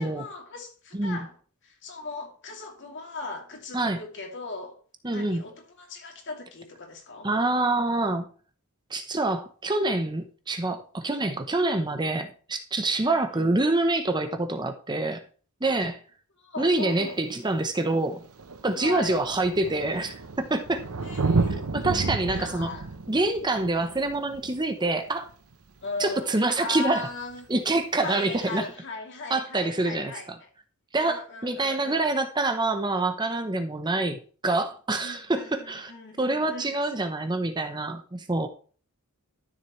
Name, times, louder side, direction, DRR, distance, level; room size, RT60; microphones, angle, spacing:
voice 1, 0.0-1.4 1.6-4.8 5.1-7.3 13.0-13.5 16.4-17.2 18.7-19.2 21.0-21.7 22.3-22.9 23.8-24.2 25.8-27.5 28.0-30.5 31.0-32.1 35.0-36.7, left 3 dB, 55° left, 2.9 m, -38 dB
voice 2, 5.0-5.4 7.2-8.3 8.9-15.2 15.6-16.0 16.6-18.2 18.6-20.8 21.7-22.7 23.1-25.3 26.0-27.1 27.5-28.7 29.3-30.4 30.9-35.9 36.2-38.5, right 2 dB, 20° right, 0.8 m, -26 dB
Thunder, 16.9-17.0 17.9-18.0 18.2-25.5 27.2-27.3, right 3 dB, 75° right, 0.9 m, -31 dB
13.0 x 7.4 x 3.2 m
head